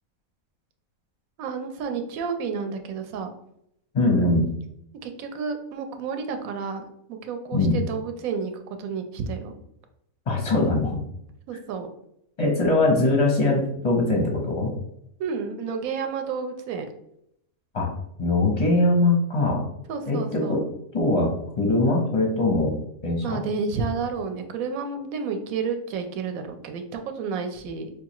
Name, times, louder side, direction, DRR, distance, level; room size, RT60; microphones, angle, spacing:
voice 1, 1.4-3.3 5.0-6.8 7.1-9.5 11.5-11.9 15.2-16.9 19.9-20.6 23.2-27.9, right 5 dB, 75° right, 6 dB, 1.0 m, -30 dB
voice 2, 3.9-4.5 7.5-7.8 10.3-11.0 12.4-14.7 17.7-17.9 18.2-19.6 20.1-20.6 20.9-23.4, left 2 dB, 40° left, 1 dB, 0.5 m, -22 dB
4.7 x 2.3 x 2.9 m, 0.76 s
omnidirectional pair, 1.5 m